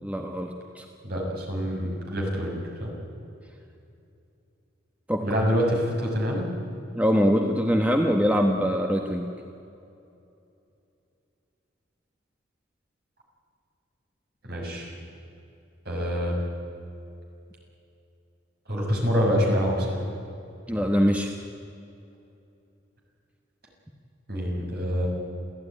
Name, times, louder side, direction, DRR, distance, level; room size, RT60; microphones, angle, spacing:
voice 1, 0.0-0.8 5.1-5.3 6.9-9.3 20.7-21.3, equal, 5° right, 3 dB, 1.2 m, -23 dB
voice 2, 1.0-2.9 5.2-6.5 14.4-14.9 15.8-16.4 18.7-20.0 24.3-25.1, equal, 50° right, -1 dB, 6.8 m, -26 dB
28.5 x 15.5 x 10.0 m, 2.7 s
head